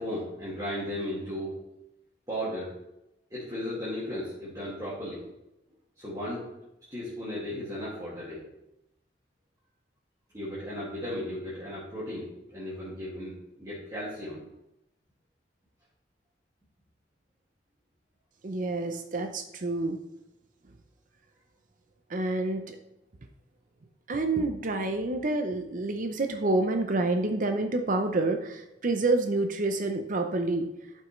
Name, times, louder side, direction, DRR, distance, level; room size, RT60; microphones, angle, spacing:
voice 1, 0.0-1.6 2.3-2.7 3.3-5.2 6.0-6.4 6.9-8.4 10.3-14.4, equal, 20° right, -10 dB, 2.2 m, -35 dB
voice 2, 18.4-20.0 22.1-22.8 24.1-30.7, right 2 dB, 50° right, 6 dB, 0.6 m, -28 dB
12.0 x 5.4 x 3.2 m, 0.89 s
head